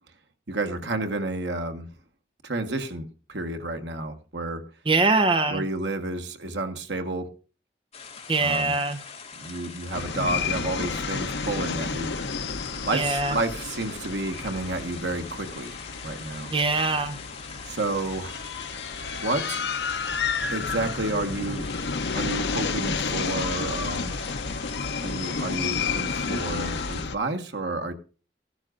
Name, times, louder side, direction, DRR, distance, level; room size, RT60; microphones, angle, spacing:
voice 1, 0.5-1.9 2.4-4.7 5.5-7.3 8.4-8.7 9.4-12.2 12.8-15.8 16.0-16.5 17.7-18.5 19.2-19.6 20.5-21.7 22.1-24.1 25.0-27.9, right 2 dB, 90° right, 1.5 m, -30 dB
voice 2, 4.9-5.6 8.3-9.0 12.9-13.4 16.5-17.2, right 3 dB, 30° right, 0.9 m, -23 dB
sound 1, 7.9-27.0, left 6 dB, 35° left, 2.2 m, -43 dB
sound 2, 9.9-27.1, left 5 dB, 80° left, 0.9 m, -31 dB
15.0 x 12.0 x 2.5 m
head